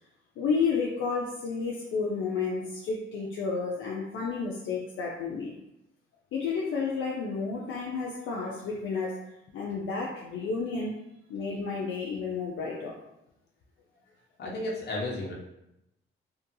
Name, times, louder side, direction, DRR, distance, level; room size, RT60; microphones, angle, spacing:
voice 1, 0.4-5.5 6.3-9.2 9.5-10.9 11.3-13.0, left 5 dB, 75° left, -2 dB, 0.4 m, -31 dB
voice 2, 14.4-15.3, left 2 dB, 55° left, -3 dB, 0.8 m, -33 dB
2.7 x 2.2 x 2.6 m, 0.85 s
cardioid pair, 120°, 21 cm